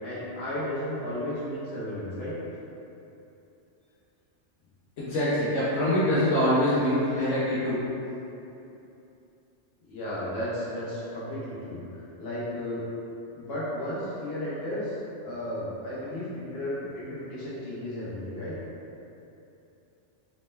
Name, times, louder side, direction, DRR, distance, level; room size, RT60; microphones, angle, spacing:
voice 1, 0.0-2.4 9.9-11.8 12.2-12.9 13.3-15.0 15.2-18.6, left 1 dB, 60° left, -9 dB, 1.2 m, -34 dB
voice 2, 5.0-7.8, left 1 dB, 80° left, -10 dB, 1.0 m, -24 dB
4.1 x 2.1 x 3.2 m, 2.8 s
omnidirectional pair, 1.3 m